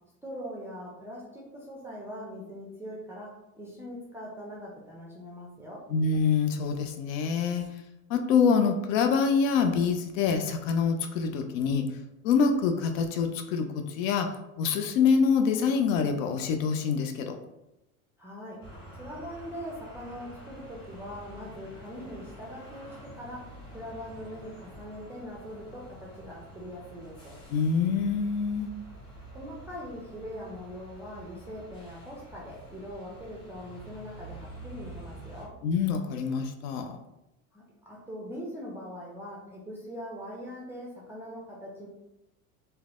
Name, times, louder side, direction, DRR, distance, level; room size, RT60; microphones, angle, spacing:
voice 1, 0.2-3.3 3.6-5.8 18.2-18.6 19.0-23.4 23.7-27.4 29.3-35.5 37.5-41.9, equal, 5° right, -4 dB, 0.4 m, -42 dB
voice 2, 5.9-7.6 8.1-11.8 12.2-14.3 14.6-17.4 27.5-28.7 35.6-36.9, left 5 dB, 65° left, 6 dB, 0.5 m, -25 dB
sound 1, 18.6-35.5, right 1 dB, 85° left, 1.1 m, -48 dB
3.1 x 2.1 x 2.3 m, 0.91 s
hypercardioid pair, 80°, 44 cm